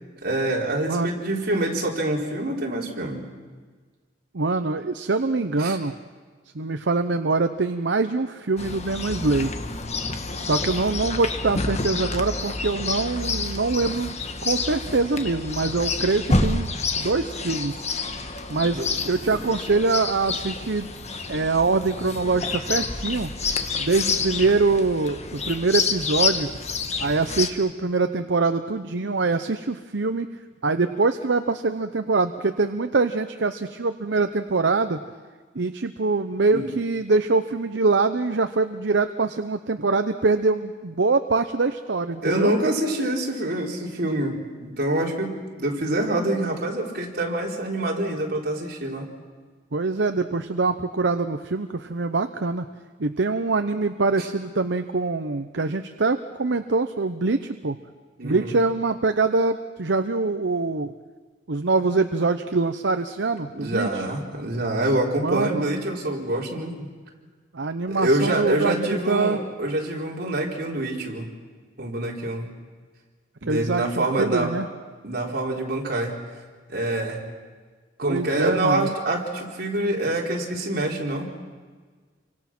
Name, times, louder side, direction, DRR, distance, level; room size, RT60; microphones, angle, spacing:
voice 1, 0.2-3.2 5.6-5.8 18.7-18.9 19.3-19.4 36.5-36.7 42.2-49.1 54.2-54.3 58.2-58.5 63.5-66.9 67.9-71.3 71.8-72.5 73.4-74.6 75.0-76.2 76.7-77.2 78.0-81.3, right 1 dB, 55° right, -1 dB, 4.2 m, -26 dB
voice 2, 0.8-1.1 4.3-6.0 6.5-9.5 10.4-14.2 14.4-16.7 17.0-17.9 18.5-20.9 21.3-23.3 23.8-26.5 27.0-30.3 30.6-35.0 35.5-42.5 49.7-52.7 53.0-57.8 58.2-60.9 61.5-64.1 65.2-65.7 67.5-69.4 73.5-74.7 78.0-78.9, right 3 dB, 75° right, 8 dB, 0.8 m, -24 dB
Chirp tweet, 8.6-27.5, left 4 dB, 40° left, 1.5 m, -28 dB
28.5 x 24.5 x 6.1 m, 1.5 s
head